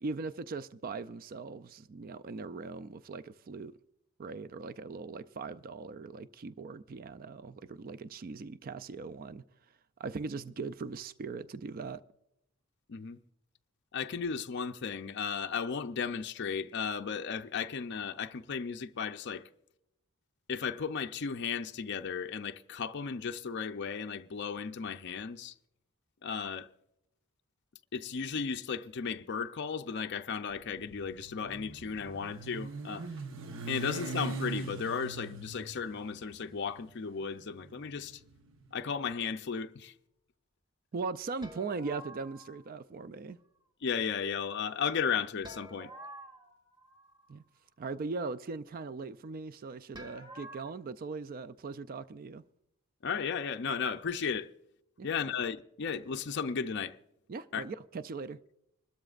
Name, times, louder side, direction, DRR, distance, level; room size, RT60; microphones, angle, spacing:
voice 1, 0.0-3.7 4.2-9.4 10.0-12.0 40.9-43.4 47.3-47.4 47.8-52.4 55.0-55.1 57.3-58.4, right 4 dB, 40° right, 0.4 m, -40 dB
voice 2, 13.9-19.5 20.5-25.5 26.2-26.7 27.9-33.1 33.7-38.2 38.7-39.9 43.8-45.9 53.0-54.5 55.0-57.0 57.5-57.6, left 6 dB, 50° left, 0.5 m, -35 dB
Motorcycle, 30.5-38.7, right 3 dB, 60° right, 0.9 m, -42 dB
sound 1, 41.4-42.7 45.4-47.3 49.9-50.7, right 1 dB, 20° right, 1.7 m, -49 dB
25.5 x 13.0 x 2.4 m
head